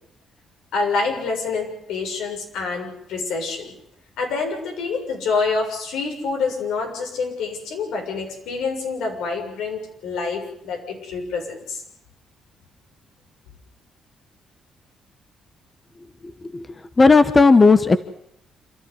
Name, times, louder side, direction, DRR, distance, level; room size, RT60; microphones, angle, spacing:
voice 1, 0.7-3.7 4.2-11.8, left 4 dB, 85° left, 2 dB, 6.9 m, -27 dB
voice 2, 17.0-18.0, left 4 dB, 25° left, 11 dB, 1.1 m, -13 dB
28.0 x 13.0 x 9.9 m, 0.77 s
cardioid pair, 90°, 0 cm